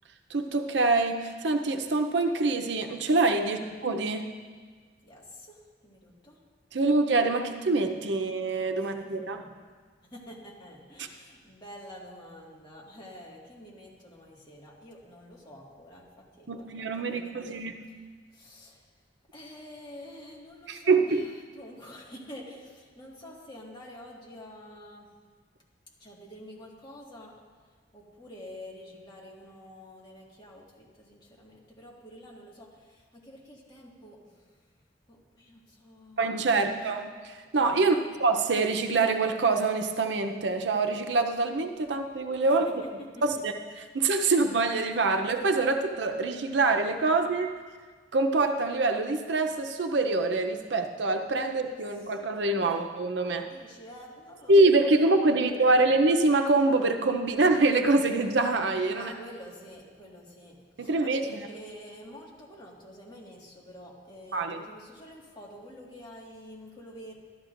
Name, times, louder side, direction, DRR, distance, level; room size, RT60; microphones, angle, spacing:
voice 1, 0.3-4.3 6.7-9.4 16.5-17.7 20.7-21.2 36.2-42.7 43.2-43.5 43.9-47.5 48.1-53.5 54.5-59.1 60.8-61.5 64.3-64.6, right 3 dB, 75° right, 5 dB, 0.7 m, -25 dB
voice 2, 5.0-6.4 8.8-9.5 10.0-17.7 18.3-18.8 19.3-25.1 26.0-27.3 27.9-34.6 35.1-36.8 37.8-38.1 42.4-42.7 43.0-43.4 52.6-52.8 53.4-54.9 55.3-55.9 58.9-67.2, equal, 25° left, -4 dB, 1.8 m, -48 dB
13.5 x 11.5 x 2.6 m, 1.5 s
head